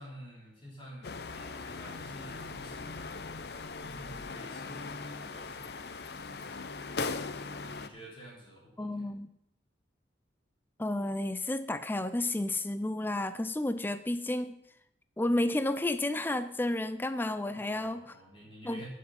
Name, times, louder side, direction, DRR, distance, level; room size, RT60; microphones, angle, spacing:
voice 1, 0.0-3.1 3.8-5.9 6.2-6.8 7.6-9.1 17.5-18.9, equal, 30° left, -5 dB, 3.6 m, -50 dB
sound 1, 1.0-7.9, left 4 dB, 60° left, 0.6 m, -39 dB
voice 2, 8.8-9.3 10.8-14.6 15.2-18.2 18.6-18.9, left 1 dB, 10° left, 12 dB, 0.4 m, -31 dB
15.5 x 6.5 x 5.5 m, 0.81 s
head